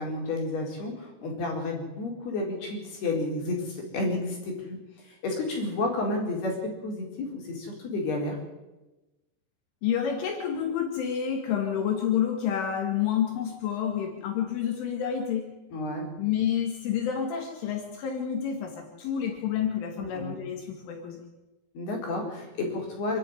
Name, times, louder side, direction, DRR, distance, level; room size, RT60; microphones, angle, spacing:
voice 1, 0.0-4.8 5.0-8.4 15.7-16.1 20.0-20.4 21.7-23.2, left 2 dB, 55° left, 0 dB, 5.9 m, -31 dB
voice 2, 9.8-15.5 16.2-21.3, left 8 dB, 75° left, 2 dB, 4.5 m, -29 dB
27.0 x 10.0 x 9.9 m, 1.1 s
omnidirectional pair, 5.8 m